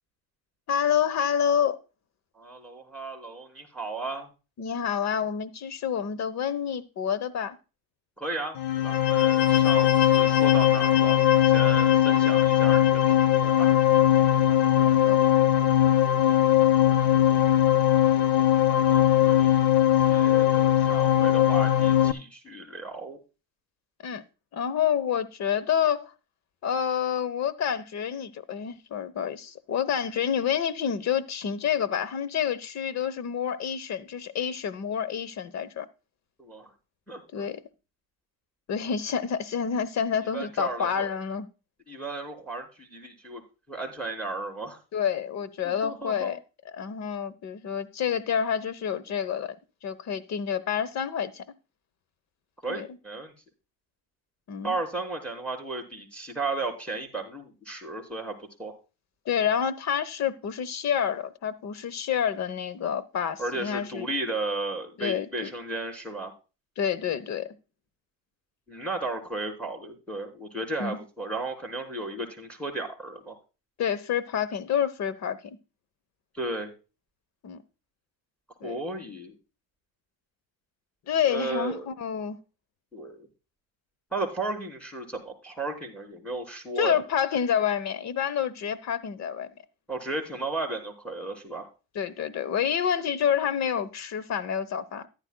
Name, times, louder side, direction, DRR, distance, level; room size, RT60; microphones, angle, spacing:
voice 1, 0.7-1.8 4.6-7.6 14.8-15.2 24.0-24.2 24.5-26.1 26.6-35.9 37.3-37.6 38.7-41.5 44.9-46.4 46.7-49.5 49.8-51.4 52.7-52.9 54.5-54.8 59.3-64.1 65.0-65.5 66.8-67.6 70.8-71.0 73.8-75.4 77.4-77.6 78.6-78.8 81.1-82.4 86.8-89.5 91.9-95.1, left 8 dB, 50° left, 1.0 m, -28 dB
voice 2, 2.3-4.3 8.2-8.6 8.8-13.7 18.7-19.7 20.1-23.2 36.4-36.7 37.1-37.5 40.3-41.1 41.9-43.4 43.7-44.8 45.6-46.3 52.6-53.3 54.6-58.7 63.4-66.3 68.7-73.4 76.3-76.7 78.6-79.3 81.3-81.9 82.9-83.3 84.1-87.0 89.9-91.7, right 2 dB, 5° left, 3.6 m, -34 dB
sound 1, 8.6-22.1, left 11 dB, 90° left, 0.8 m, -20 dB
14.0 x 11.0 x 2.3 m
cardioid pair, 110°, 35 cm